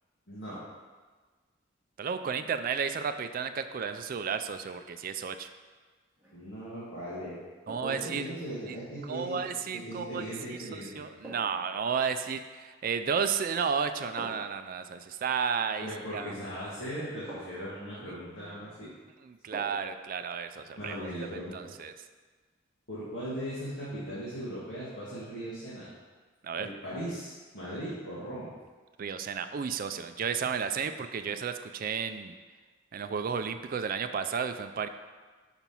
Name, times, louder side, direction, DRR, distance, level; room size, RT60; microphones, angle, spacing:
voice 1, 0.3-0.6 6.3-7.4 7.8-9.4 9.7-11.0 15.8-18.9 20.8-21.7 22.9-25.9 26.6-28.5, equal, 65° left, -10 dB, 1.8 m, -38 dB
voice 2, 2.0-5.5 7.7-8.2 8.7-8.8 9.1-10.2 10.6-15.9 16.1-16.3 18.4-18.5 19.2-21.1 21.5-21.9 26.4-26.7 29.0-32.3 32.9-34.9, right 6 dB, 45° right, 9 dB, 0.3 m, -32 dB
sound 1, 6.1-6.4 7.7-8.1 10.2-10.4 11.2-11.7 13.0-13.4 14.2-14.6 16.3-16.4 17.3-17.7 19.5-20.0 20.3-20.4, right 1 dB, 10° right, 2.1 m, -46 dB
5.8 x 4.4 x 5.4 m, 1.4 s
head